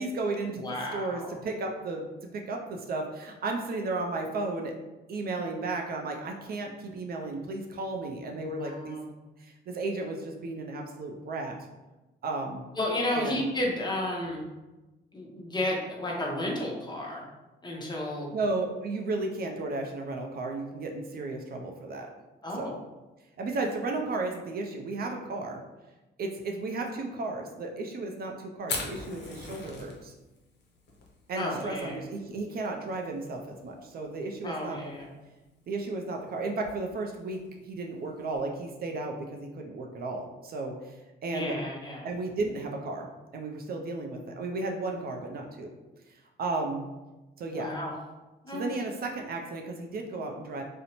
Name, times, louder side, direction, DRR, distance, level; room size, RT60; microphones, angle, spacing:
voice 1, 0.0-0.6 0.9-2.1 2.3-4.7 5.1-9.0 9.4-11.6 12.2-12.6 13.1-13.4 18.3-22.1 22.6-22.8 23.4-25.6 26.2-30.1 31.3-34.8 35.7-41.6 42.0-45.8 46.1-46.9 47.4-47.7 48.5-50.6, right 3 dB, 50° right, 2 dB, 0.4 m, -34 dB
voice 2, 0.6-1.4 8.3-9.0 12.8-14.4 15.1-17.2 17.6-18.3 22.4-22.7 31.4-32.0 34.4-35.1 41.3-42.1 47.5-47.9 48.4-48.7, left 1 dB, 20° left, -1 dB, 0.6 m, -32 dB
Fire, 28.6-38.4, left 3 dB, 60° left, 0.6 m, -43 dB
2.6 x 2.0 x 2.8 m, 1.1 s
cardioid pair, 90°, 20 cm